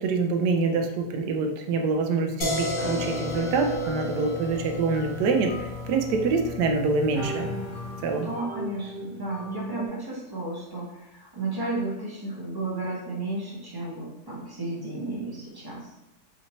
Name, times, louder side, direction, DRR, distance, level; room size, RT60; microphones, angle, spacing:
voice 1, 0.0-7.5 8.0-8.3, right 4 dB, 75° right, 4 dB, 1.1 m, -25 dB
sound 1, 2.4-8.2, left 3 dB, 55° left, 0.5 m, -34 dB
sound 2, 2.8-6.1 6.6-6.7 7.0-9.9, right 2 dB, 20° left, 0.8 m, -37 dB
voice 2, 8.2-15.9, right 2 dB, 30° right, -5 dB, 0.4 m, -33 dB
4.2 x 2.7 x 2.8 m, 0.93 s
omnidirectional pair, 1.8 m